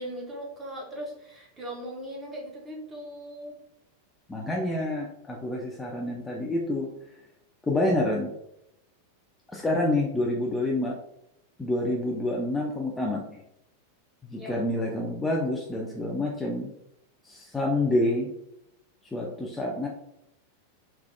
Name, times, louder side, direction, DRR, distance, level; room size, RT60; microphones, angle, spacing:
voice 1, 0.0-3.6 14.4-14.6, right 1 dB, 15° right, -2 dB, 0.8 m, -39 dB
voice 2, 4.3-6.9 7.6-8.3 9.5-10.9 11.6-13.4 14.3-16.7 17.2-18.3 19.1-19.9, left 1 dB, 10° left, -2 dB, 0.4 m, -28 dB
3.2 x 2.3 x 2.2 m, 0.81 s
figure-of-eight pair, 90°, 0 cm